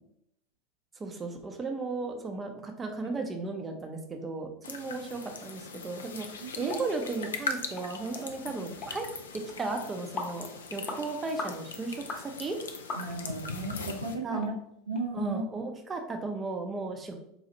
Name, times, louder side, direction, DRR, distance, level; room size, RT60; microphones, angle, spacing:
voice 1, 1.0-9.1 9.3-12.6 14.2-14.4 15.1-17.2, right 3 dB, 20° right, 4 dB, 0.5 m, -35 dB
sound 1, 4.6-14.1, left 4 dB, 70° left, 0.4 m, -40 dB
voice 2, 6.4-6.8 8.5-8.7 13.0-14.5 14.9-15.4, right 3 dB, 80° right, 1 dB, 0.5 m, -35 dB
sound 2, 6.7-6.8 7.2-7.3 7.8-7.9 8.1-8.3 8.8-9.0 9.5-9.6 10.2-10.4 10.9-11.0 11.4-11.6 12.1-12.2 12.9-13.3 13.8-13.9 14.4-14.5 15.0-15.1, left 3 dB, 35° left, 0.8 m, -37 dB
4.1 x 2.4 x 2.7 m, 0.76 s
figure-of-eight pair, 80°, 0 cm